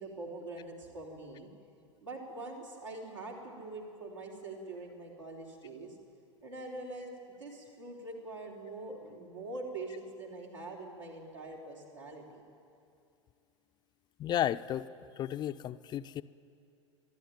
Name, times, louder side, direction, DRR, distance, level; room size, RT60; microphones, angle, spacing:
voice 1, 0.0-1.5 2.0-6.0 6.4-7.1 7.4-12.4, right 2 dB, 75° right, -3 dB, 3.8 m, -44 dB
voice 2, 14.2-14.9 15.2-16.2, left 11 dB, 25° left, 11 dB, 0.5 m, -33 dB
24.0 x 11.5 x 9.9 m, 2.5 s
figure-of-eight pair, 85°, 16 cm